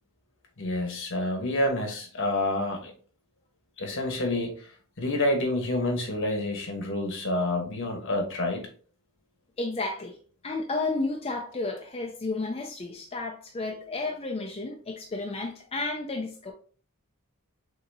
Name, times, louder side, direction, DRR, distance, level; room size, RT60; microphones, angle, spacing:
voice 1, 0.6-2.9 3.8-4.5 5.0-8.7, left 1 dB, 60° left, 1.2 m, -28 dB
voice 2, 9.6-10.2 10.4-16.5, left 3 dB, 25° left, 0.5 m, -32 dB
6.4 x 2.8 x 2.7 m
head